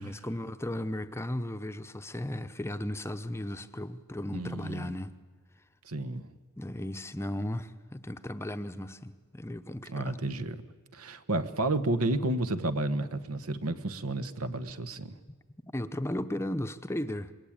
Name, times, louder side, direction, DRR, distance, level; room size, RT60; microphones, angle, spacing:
voice 1, 0.0-5.1 6.6-10.2 15.7-17.3, left 1 dB, 10° left, 0.7 m, -35 dB
voice 2, 4.3-4.9 5.8-6.3 9.9-10.6 10.9-15.1, right 2 dB, 90° right, 1.3 m, -31 dB
27.0 x 21.0 x 8.8 m
head